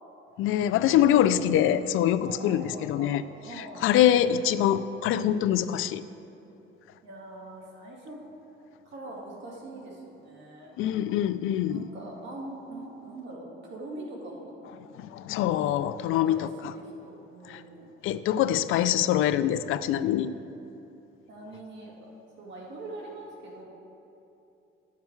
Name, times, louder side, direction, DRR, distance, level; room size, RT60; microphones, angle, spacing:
voice 1, 0.4-3.2 3.6-6.0 10.8-11.9 15.0-16.7 17.5-17.6 18.0-20.3, left 11 dB, 75° left, 14 dB, 0.4 m, -24 dB
voice 2, 2.2-3.9 7.0-8.2 8.9-10.7 11.7-14.6 16.1-17.9 21.3-22.1 22.4-23.6, right 2 dB, 60° right, -2 dB, 2.1 m, -43 dB
11.0 x 7.4 x 4.5 m, 2.9 s
cardioid pair, 140°, 21 cm